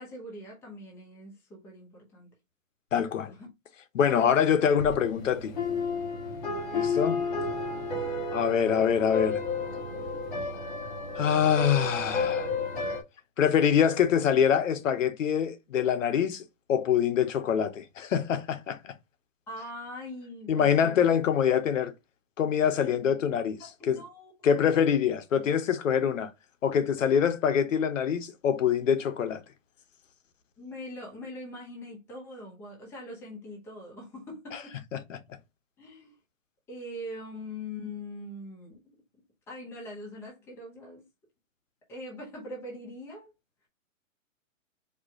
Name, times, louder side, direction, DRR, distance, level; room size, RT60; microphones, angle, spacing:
voice 1, 0.0-2.3 3.3-3.5 19.5-21.1 23.6-24.3 30.6-34.7 35.8-36.2 36.7-39.0 39.5-41.1 41.9-43.3, left 1 dB, 5° left, 0.8 m, -42 dB
voice 2, 2.9-3.3 3.9-5.5 6.7-7.2 8.3-9.4 11.2-12.5 13.4-16.4 16.7-18.9 20.5-21.9 22.4-24.0 24.4-26.3 26.6-29.4 34.9-35.2, left 8 dB, 70° left, 0.9 m, -25 dB
sound 1, 4.8-13.0, left 3 dB, 35° left, 1.6 m, -32 dB
4.7 x 2.3 x 4.6 m
hypercardioid pair, 165°, 40 cm